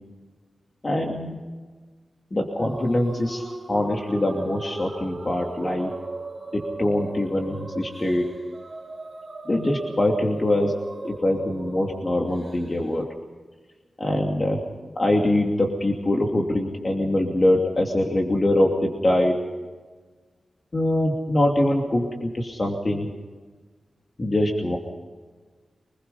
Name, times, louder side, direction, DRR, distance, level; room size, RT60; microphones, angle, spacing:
voice 1, 0.8-1.4 2.3-5.9 6.5-8.3 9.5-10.8 11.0-13.1 14.0-14.6 15.0-19.4 20.7-23.1 24.2-24.8, left 1 dB, 35° left, 0 dB, 2.8 m, -23 dB
sound 1, 2.6-13.1, right 3 dB, 35° right, 4.1 m, -38 dB
25.5 x 20.5 x 5.6 m, 1.4 s
wide cardioid pair, 80°, 0 cm